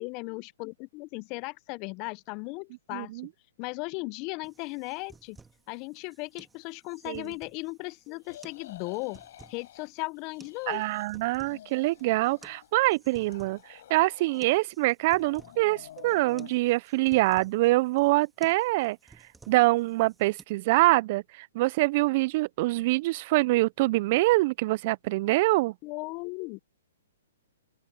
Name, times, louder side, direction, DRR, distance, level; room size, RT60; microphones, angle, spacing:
voice 1, 0.0-3.1 3.6-5.4 5.7-9.2 9.5-10.8 25.8-26.6, left 27 dB, 35° left, 0.7 m, -37 dB
voice 2, 2.9-3.3 7.1-7.3 10.7-19.0 19.5-25.7, right 20 dB, 45° right, 0.4 m, -25 dB
sound 1, 4.4-20.4, right 4 dB, 10° right, 2.7 m, -56 dB
sound 2, 8.2-9.9 10.2-11.1 11.3-12.7 13.0-14.7 15.0-16.5, left 12 dB, 55° left, 5.2 m, -50 dB
open air
hypercardioid pair, 130°, 0 cm